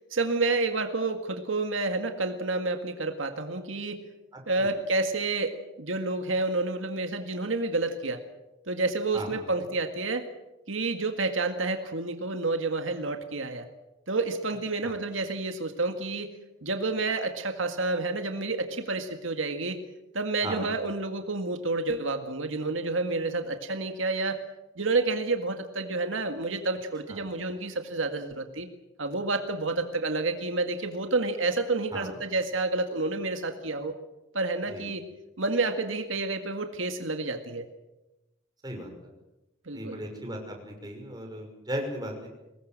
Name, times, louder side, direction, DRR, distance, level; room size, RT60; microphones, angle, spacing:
voice 1, 0.1-4.0 4.5-8.2 8.7-10.3 10.7-13.7 14.1-16.3 16.6-19.9 20.1-24.4 24.8-28.7 29.0-34.0 34.3-35.1 35.4-37.7 39.7-40.0, right 3 dB, 80° right, 6 dB, 2.0 m, -29 dB
voice 2, 4.3-4.7 9.1-9.4 14.8-14.9 20.4-20.7 27.1-27.3 31.9-32.1 34.7-34.8 38.6-39.1 39.7-42.3, right 1 dB, 20° right, 2 dB, 5.9 m, -37 dB
24.5 x 20.0 x 7.7 m, 0.99 s
head